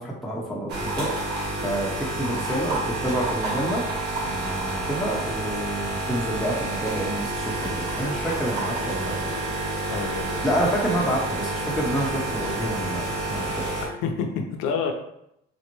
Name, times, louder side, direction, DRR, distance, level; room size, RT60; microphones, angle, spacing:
voice 1, 0.0-3.8 4.2-9.7 10.4-13.0 13.3-13.7, right 1 dB, ahead, -4 dB, 0.8 m, -28 dB
sound 1, 0.7-13.9, right 2 dB, 50° right, 1.3 m, -29 dB
voice 2, 9.9-10.6 13.8-14.9, left 6 dB, 85° left, 3 dB, 0.6 m, -29 dB
4.0 x 2.1 x 3.0 m, 0.77 s
cardioid pair, 105°, 21 cm